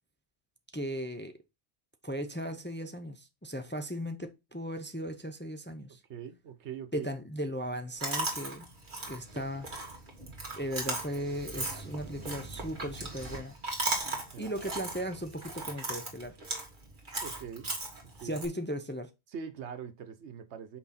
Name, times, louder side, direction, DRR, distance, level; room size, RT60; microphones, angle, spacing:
voice 1, 0.7-1.3 2.0-6.0 6.9-8.7 9.1-9.7 10.6-13.5 14.4-16.4 18.2-19.1, equal, 15° left, 0.5 m, -37 dB
voice 2, 6.1-7.1 14.3-14.5 17.2-17.7 18.2-18.4 19.3-20.8, right 7 dB, 90° right, 1.1 m, -42 dB
Chewing mastication, 8.0-18.5, right 2 dB, 50° right, 1.8 m, -37 dB
5.9 x 4.7 x 4.2 m
omnidirectional pair, 1.1 m